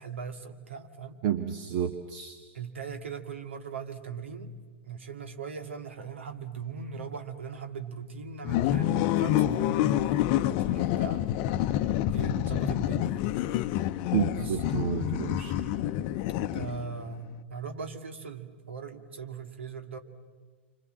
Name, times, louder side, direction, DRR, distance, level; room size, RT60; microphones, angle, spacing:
voice 1, 0.0-1.2 2.5-4.5 4.8-10.1 10.5-11.2 12.1-13.4 14.4-14.6 16.4-20.0, right 6 dB, 70° right, 6 dB, 2.2 m, -39 dB
voice 2, 1.2-2.4 14.1-15.5, right 9 dB, 45° right, 8 dB, 1.5 m, -30 dB
sound 1, 8.4-17.0, left 12 dB, 40° left, 0.8 m, -27 dB
29.0 x 25.5 x 7.6 m, 1.5 s
figure-of-eight pair, 100°, 7 cm